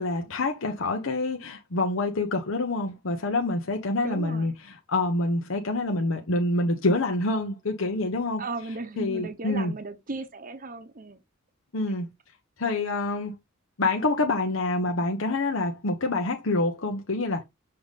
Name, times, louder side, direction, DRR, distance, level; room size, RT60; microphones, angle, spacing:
voice 1, 0.0-8.4 9.0-9.7 11.7-12.1 12.6-13.4 13.8-17.4, left 2 dB, 70° left, 1.0 m, -27 dB
voice 2, 4.0-4.5 8.4-11.2, right 3 dB, 40° right, 0.9 m, -36 dB
6.8 x 3.4 x 4.1 m
head